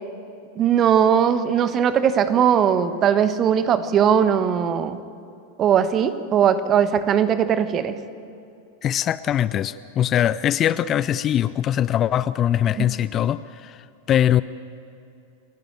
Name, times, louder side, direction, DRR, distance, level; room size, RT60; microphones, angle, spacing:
voice 1, 0.6-5.0 5.6-8.0 12.8-12.9, right 8 dB, 30° right, 12 dB, 1.2 m, -19 dB
voice 2, 8.8-13.8 14.1-14.4, left 10 dB, 30° left, 17 dB, 0.5 m, -22 dB
29.5 x 11.5 x 9.2 m, 2.6 s
figure-of-eight pair, 90°, 0 cm